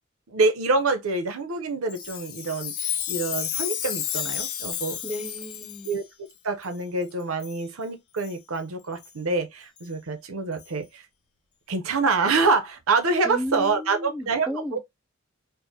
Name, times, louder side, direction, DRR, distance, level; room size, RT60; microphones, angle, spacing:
voice 1, 0.3-5.0 5.9-6.0 6.4-11.0 11.7-14.8, right 3 dB, 75° right, 0.7 m, -26 dB
Chime, 1.9-6.0 6.6-6.7 7.4-7.6 8.2-8.3 9.0-9.1 9.8-9.9 10.6-10.7, left 10 dB, 85° left, 0.7 m, -32 dB
voice 2, 5.0-5.9 13.2-14.8, equal, 5° right, 0.5 m, -33 dB
4.6 x 2.1 x 2.7 m
head